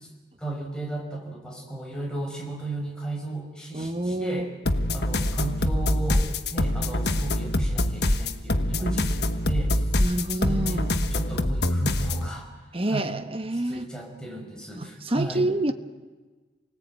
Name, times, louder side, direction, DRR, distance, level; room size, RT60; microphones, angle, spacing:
voice 1, 0.4-4.5 4.9-6.2 6.5-9.9 10.4-10.9 11.1-12.5 12.9-13.2 13.7-15.5, right 2 dB, 5° left, 0 dB, 5.4 m, -35 dB
voice 2, 3.7-4.5 8.8-9.1 10.0-10.9 12.7-13.9 14.8-15.7, right 1 dB, 30° right, 9 dB, 1.3 m, -28 dB
sound 1, 4.6-12.3, left 1 dB, 65° left, 1.4 m, -25 dB
28.5 x 19.5 x 9.2 m, 1.3 s
head